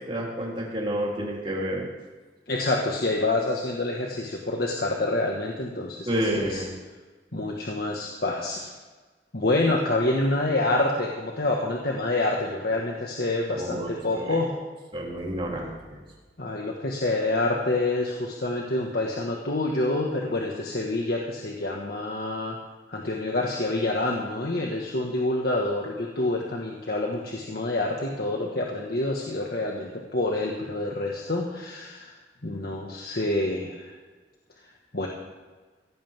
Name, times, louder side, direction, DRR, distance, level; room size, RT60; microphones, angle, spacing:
voice 1, 0.1-1.9 6.1-6.7 13.5-14.4 14.9-16.0, equal, 30° right, -3 dB, 3.5 m, -30 dB
voice 2, 2.5-6.6 7.3-8.6 9.3-14.5 16.4-22.6 22.9-32.1 32.4-33.9 34.9-35.1, left 2 dB, 60° left, -1 dB, 1.7 m, -27 dB
16.5 x 15.5 x 3.6 m, 1.3 s
head